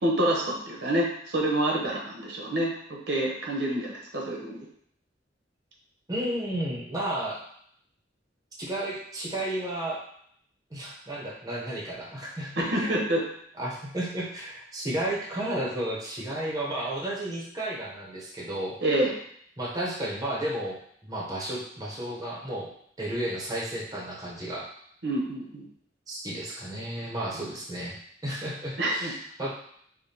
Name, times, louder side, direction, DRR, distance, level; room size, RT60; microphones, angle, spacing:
voice 1, 0.0-4.7 12.6-13.2 18.8-19.1 25.0-25.7 27.3-27.4 28.8-29.1, right 1 dB, 70° right, -1 dB, 0.8 m, -27 dB
voice 2, 6.1-7.4 8.6-10.0 10.7-13.1 13.6-18.8 19.6-22.7 23.0-24.6 26.1-28.0 28.2-29.5, right 1 dB, 20° right, -4 dB, 0.7 m, -33 dB
5.0 x 2.1 x 2.7 m, 0.67 s
head